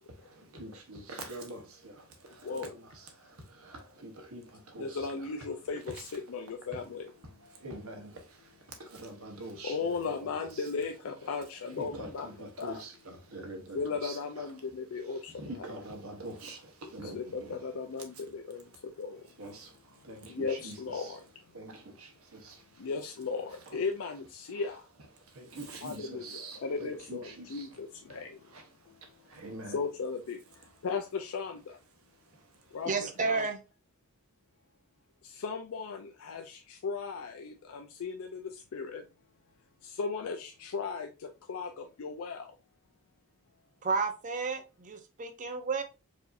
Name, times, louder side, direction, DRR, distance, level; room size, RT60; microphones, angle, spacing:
voice 1, 0.1-5.5 5.9-6.2 6.7-6.9 7.2-10.9 11.2-11.3 11.6-17.7 18.1-18.3 18.5-18.8 19.2-21.2 21.5-22.9 23.5-23.8 24.5-24.6 25.1-27.8 28.1-29.8 30.5-30.8 31.9-32.9, right 2 dB, 80° right, 1.0 m, -46 dB
voice 2, 4.8-7.1 9.6-12.3 12.6-12.8 13.7-15.3 17.1-19.2 20.3-21.2 22.8-24.8 25.8-28.4 29.7-30.4 30.8-31.8 32.7-33.4 35.2-39.0 39.8-42.5, left 4 dB, 70° left, 0.4 m, -36 dB
voice 3, 32.8-33.6 43.8-45.8, right 4 dB, 35° right, 0.6 m, -31 dB
4.8 x 2.7 x 2.5 m
head